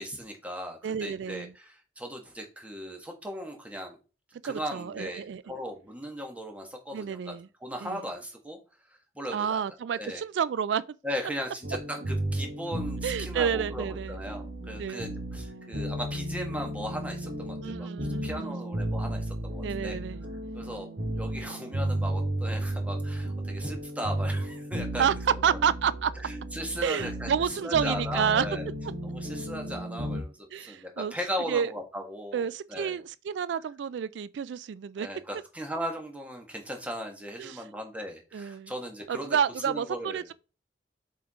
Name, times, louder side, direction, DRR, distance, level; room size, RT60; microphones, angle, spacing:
voice 1, 0.0-4.0 4.4-7.3 7.6-8.6 8.9-9.6 9.9-10.2 11.0-17.9 18.2-20.0 20.5-20.9 21.1-25.4 26.2-27.3 27.6-28.7 29.0-33.0 35.0-39.4 39.7-40.3, equal, 10° right, 1.5 m, -37 dB
voice 2, 0.8-1.5 4.4-5.5 6.9-7.5 7.8-8.0 9.3-10.8 13.0-14.2 14.8-15.1 17.6-18.6 19.6-20.2 25.0-26.1 26.8-28.5 30.5-31.1 31.5-31.7 32.3-35.1 37.4-37.6 38.3-38.7 39.1-40.3, right 7 dB, 90° right, 0.3 m, -29 dB
sound 1, 11.6-30.2, right 1 dB, 60° right, 1.3 m, -34 dB
7.2 x 4.6 x 3.6 m
head